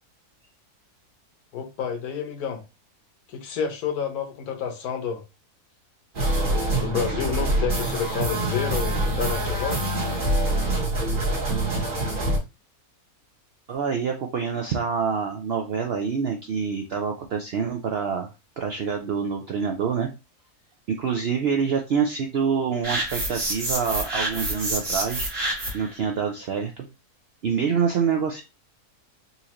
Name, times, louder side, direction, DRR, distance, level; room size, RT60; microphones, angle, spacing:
voice 1, 1.5-2.6 3.3-5.2 6.3-9.9, left 7 dB, 75° left, 1.4 m, -29 dB
sound 1, 6.1-12.4, right 1 dB, 35° right, 1.2 m, -25 dB
voice 2, 13.7-18.3 18.6-20.1 20.9-25.3 25.7-26.9 27.4-28.4, right 6 dB, 75° right, 0.5 m, -26 dB
sound 2, 22.8-25.9, right 1 dB, 55° right, 1.8 m, -28 dB
4.2 x 2.5 x 2.9 m
omnidirectional pair, 1.6 m